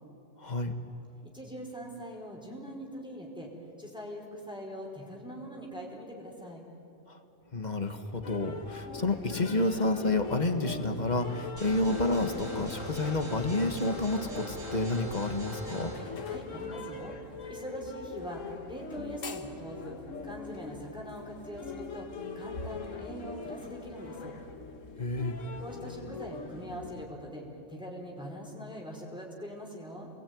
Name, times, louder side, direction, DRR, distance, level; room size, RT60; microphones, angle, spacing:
voice 1, 0.4-0.7 7.1-7.2 7.5-15.9 25.0-25.3, left 2 dB, 35° left, 7 dB, 1.7 m, -30 dB
voice 2, 1.3-3.5 3.8-6.6 16.0-17.1 17.5-18.4 18.7-20.0 20.2-22.1 22.3-24.3 25.6-30.1, equal, 5° right, -2 dB, 4.7 m, -42 dB
sound 1, 8.2-27.1, left 4 dB, 85° left, 1.8 m, -41 dB
sound 2, 11.6-16.0, equal, 45° right, 6.5 m, -41 dB
29.0 x 21.5 x 9.5 m, 2.9 s
omnidirectional pair, 1.3 m